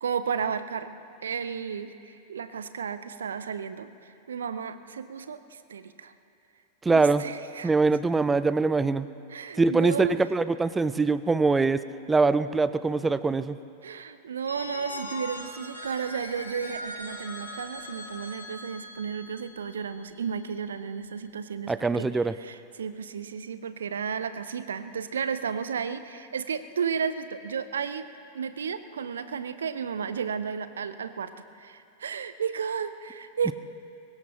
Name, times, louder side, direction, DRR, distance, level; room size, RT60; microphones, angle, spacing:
voice 1, 0.0-0.9 1.2-6.1 6.9-7.7 9.3-10.3 13.8-28.1 28.3-33.5, right 7 dB, 65° right, 12 dB, 0.7 m, -33 dB
voice 2, 6.8-7.2 7.6-9.1 9.6-11.8 12.1-13.6 21.7-22.3, right 3 dB, 10° right, 14 dB, 0.5 m, -23 dB
Telephone, 14.5-20.2, left 1 dB, 85° left, 2.2 m, -40 dB
23.5 x 20.5 x 3.0 m, 2.6 s
figure-of-eight pair, 90°, 0 cm